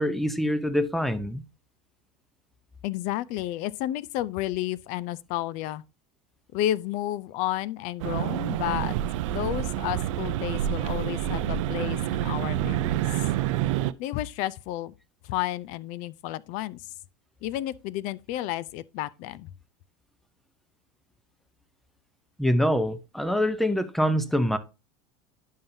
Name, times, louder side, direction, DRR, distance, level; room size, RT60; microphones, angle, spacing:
voice 1, 0.0-1.4 22.4-24.6, equal, ahead, 0.6 m, -25 dB
voice 2, 2.8-5.8 6.5-9.0 9.3-13.1 14.0-14.9 15.2-16.8 17.4-19.5, left 14 dB, 50° left, 0.4 m, -31 dB
sound 1, 8.0-13.9, right 13 dB, 80° right, 0.5 m, -28 dB
10.5 x 5.5 x 2.7 m
supercardioid pair, 135°, 16 cm